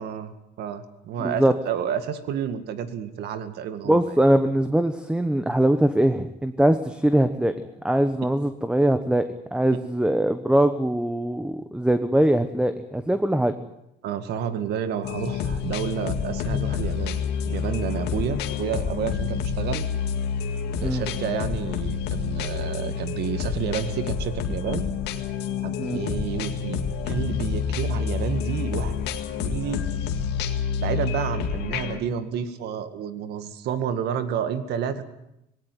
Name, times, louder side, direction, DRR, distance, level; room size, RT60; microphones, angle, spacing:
voice 1, 0.0-4.0 14.0-19.8 20.8-24.8 25.6-28.9 29.4-29.8 30.8-35.0, right 8 dB, 75° right, 10 dB, 2.1 m, -30 dB
voice 2, 1.2-1.5 3.9-7.5 7.8-13.5 20.8-21.0 25.8-26.0, right 1 dB, 5° right, 10 dB, 1.1 m, -22 dB
sound 1, 15.0-32.0, left 7 dB, 90° left, 2.0 m, -28 dB
19.0 x 18.0 x 9.3 m, 0.85 s
cardioid pair, 110°, 17 cm